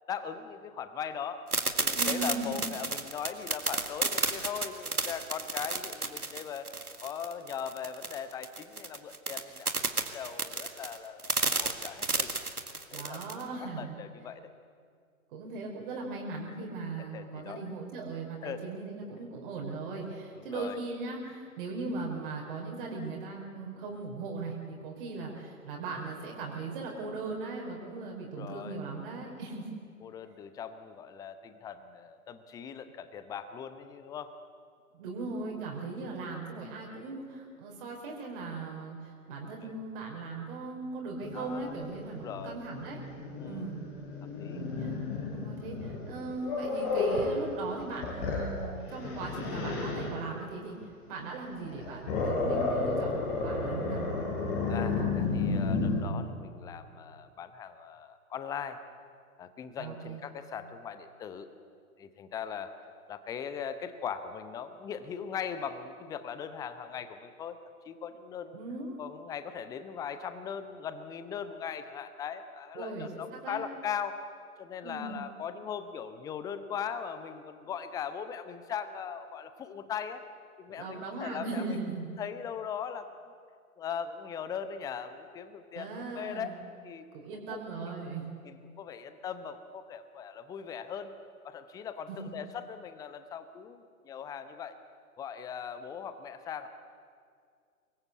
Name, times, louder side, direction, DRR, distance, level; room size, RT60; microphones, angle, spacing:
voice 1, 0.1-6.7 7.0-12.3 12.9-13.2 13.6-14.5 17.0-17.6 18.4-18.7 20.3-20.8 28.2-28.8 30.0-34.4 39.6-39.7 41.3-41.7 42.1-42.5 43.4-43.7 44.4-44.7 54.7-58.8 59.4-61.5 62.0-62.7 63.1-67.6 67.8-68.6 69.0-74.2 74.6-80.2 80.6-81.8 82.2-83.1 83.8-86.5 86.8-87.1 87.5-87.9 88.4-91.1 91.4-94.8 95.2-96.7, left 7 dB, 10° left, 11 dB, 0.8 m, -39 dB
sound 1, 1.5-13.4, right 3 dB, 85° right, 2.0 m, -31 dB
voice 2, 1.9-2.6 12.9-13.9 15.3-29.7 34.9-43.0 43.4-43.8 44.5-44.9 45.3-50.8 51.1-54.1 59.8-60.2 68.5-69.0 72.7-73.6 74.8-75.2 80.7-82.1 85.7-86.6 87.1-88.2 92.1-92.2, right 3 dB, 35° right, -1 dB, 4.8 m, -38 dB
Growling, 41.2-47.3 47.8-50.1 51.6-56.0, left 3 dB, 35° left, 6.8 m, -32 dB
24.5 x 21.0 x 8.3 m, 2.2 s
figure-of-eight pair, 120°, 44 cm